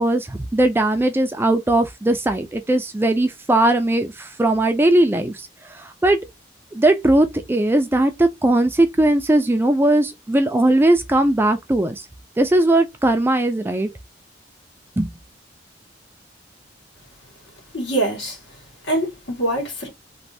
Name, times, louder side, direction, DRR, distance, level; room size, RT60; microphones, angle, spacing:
voice 1, 0.0-5.5 5.7-6.2 6.7-12.1 12.4-13.9 15.0-15.1, right 1 dB, 10° right, 0.3 m, -19 dB
voice 2, 17.7-18.4 18.8-19.9, right 1 dB, 70° left, 1.8 m, -24 dB
3.1 x 2.6 x 2.6 m
head